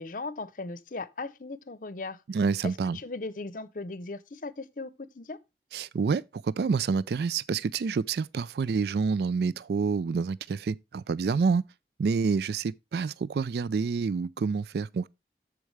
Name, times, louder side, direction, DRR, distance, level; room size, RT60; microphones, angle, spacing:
voice 1, 0.0-2.2 2.6-5.4, left 3 dB, 50° left, 0.7 m, -38 dB
voice 2, 2.3-3.0 5.7-11.6 12.0-15.1, right 5 dB, 65° right, 0.3 m, -28 dB
13.5 x 4.7 x 3.2 m
head